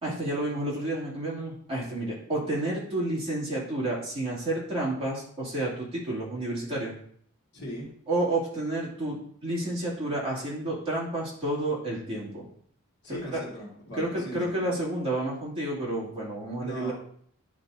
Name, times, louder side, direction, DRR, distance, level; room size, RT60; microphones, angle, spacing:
voice 1, 0.0-6.9 8.1-12.5 13.1-13.4 13.9-16.9, right 1 dB, 25° right, -6 dB, 2.5 m, -30 dB
voice 2, 7.5-7.9 13.0-14.6 16.6-16.9, equal, 55° left, -2 dB, 1.7 m, -38 dB
10.5 x 5.0 x 2.6 m, 0.62 s
head